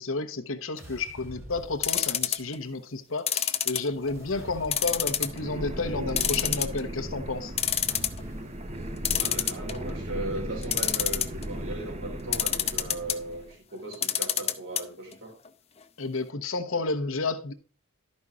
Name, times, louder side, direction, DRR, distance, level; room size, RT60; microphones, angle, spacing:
voice 1, 0.0-7.5 16.0-17.5, left 3 dB, 70° left, 1.0 m, -31 dB
sound 1, 0.8-2.4 3.8-5.3 7.9-8.7 11.0-12.1, equal, 15° right, 1.9 m, -46 dB
sound 2, 1.8-2.6 3.3-4.2 4.7-5.4 5.7-5.8 6.2-7.0 7.3-7.4 7.6-8.2 9.0-9.9 10.6-11.5 12.3-13.2 13.9-14.8 15.1-15.2 15.5-15.6, left 10 dB, 30° left, 0.6 m, -26 dB
sound 3, 3.9-13.5, right 1 dB, 30° right, 0.9 m, -37 dB
voice 2, 8.9-15.4, right 1 dB, 65° right, 3.1 m, -38 dB
12.5 x 5.4 x 3.6 m
head